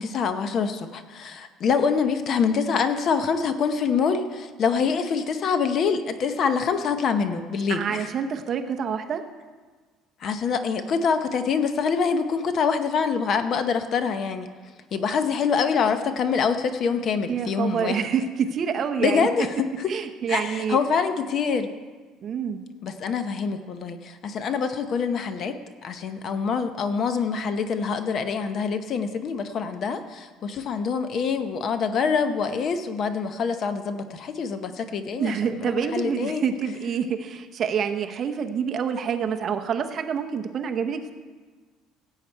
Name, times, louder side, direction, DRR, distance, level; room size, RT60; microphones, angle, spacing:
voice 1, 0.0-8.1 10.2-14.5 14.9-18.1 19.0-19.5 19.8-19.9 20.3-21.7 22.8-25.6 25.8-36.4, left 5 dB, 40° left, 9 dB, 0.8 m, -25 dB
voice 2, 7.7-9.2 17.3-19.3 19.9-20.8 22.2-22.6 35.2-41.1, right 7 dB, 40° right, 6 dB, 0.8 m, -27 dB
16.5 x 8.3 x 4.6 m, 1.4 s
cardioid pair, 150°, 0 cm